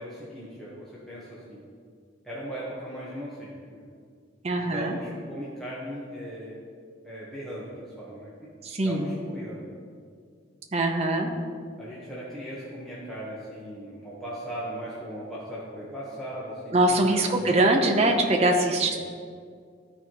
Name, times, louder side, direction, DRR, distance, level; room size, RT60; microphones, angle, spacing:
voice 1, 0.0-1.6 2.2-3.9 4.6-6.6 7.0-8.3 8.8-9.7 11.4-11.5 11.8-17.7 18.9-19.0, equal, ahead, -9 dB, 1.0 m, -38 dB
voice 2, 4.4-5.0 8.7-9.0 10.7-11.3 16.7-19.0, right 2 dB, 30° right, 3 dB, 0.6 m, -22 dB
13.0 x 4.6 x 2.9 m, 2.1 s
head